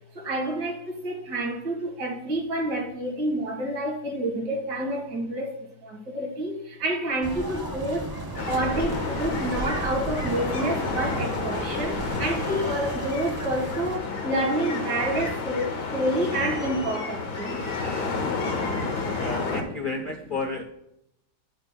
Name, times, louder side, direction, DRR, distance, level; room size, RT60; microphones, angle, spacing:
voice 1, 0.1-8.1 8.5-17.6, right 1 dB, 75° right, 2.5 m, -28 dB
sound 1, 7.2-14.0, right 2 dB, 30° right, 0.4 m, -34 dB
sound 2, 8.4-19.6, left 4 dB, 75° left, 1.9 m, -30 dB
voice 2, 19.2-20.6, left 3 dB, 50° left, 0.6 m, -31 dB
12.0 x 7.7 x 2.2 m
omnidirectional pair, 1.8 m